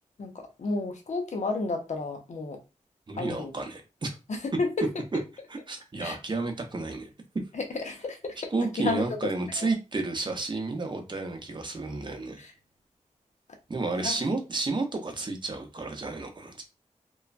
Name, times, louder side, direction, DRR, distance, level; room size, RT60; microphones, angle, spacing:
voice 1, 0.2-2.6 3.2-3.5 4.3-4.7 6.0-6.2 7.5-8.4 8.8-9.3 9.6-9.7 14.0-14.1, left 3 dB, 65° left, 0.6 m, -31 dB
voice 2, 3.1-4.1 5.5-7.1 8.5-12.5 13.7-16.6, right 3 dB, 40° right, 0.6 m, -31 dB
3.0 x 2.2 x 2.4 m
wide cardioid pair, 85°, 13 cm